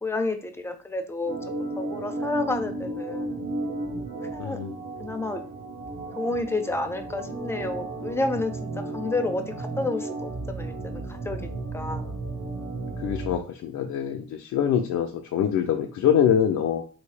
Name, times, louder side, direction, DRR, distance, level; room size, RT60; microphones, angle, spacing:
voice 1, 0.0-1.4 1.8-3.4 4.3-4.6 5.0-5.4 6.2-12.1, left 2 dB, 10° left, 6 dB, 0.5 m, -30 dB
Organ, 1.2-13.4, right 2 dB, 85° right, 1.2 m, -34 dB
voice 2, 4.4-4.8 13.0-16.8, left 9 dB, 70° left, 2 dB, 0.5 m, -24 dB
3.2 x 2.8 x 3.2 m, 0.39 s
cardioid pair, 90°, 30 cm